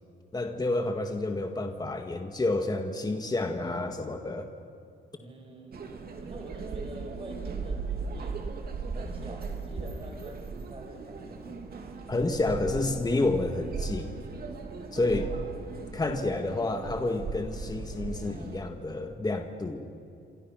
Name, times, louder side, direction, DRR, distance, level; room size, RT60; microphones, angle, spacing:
voice 1, 0.3-4.5 12.1-14.2 14.9-15.3 15.9-19.9, left 2 dB, 20° left, 5 dB, 1.9 m, -29 dB
voice 2, 5.1-5.8 6.2-8.4 8.9-11.6 15.1-15.4, right 2 dB, 30° right, 1 dB, 6.4 m, -45 dB
sound 1, 5.7-18.6, right 4 dB, 50° right, 3.3 m, -38 dB
28.0 x 27.0 x 6.0 m, 2.5 s
cardioid pair, 90°, 20 cm